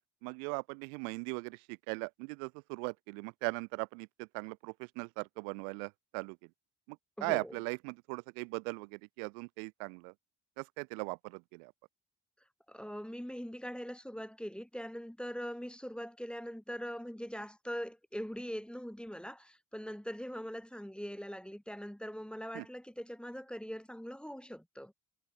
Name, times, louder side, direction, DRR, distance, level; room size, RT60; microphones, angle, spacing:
voice 1, 0.2-1.6 1.9-6.4 7.2-10.1 10.6-11.7 22.5-22.6, right 40 dB or more, 80° right, 0.6 m, -39 dB
voice 2, 7.2-7.6 12.7-24.9, equal, ahead, 1.4 m, -42 dB
hypercardioid pair, 45°, 42 cm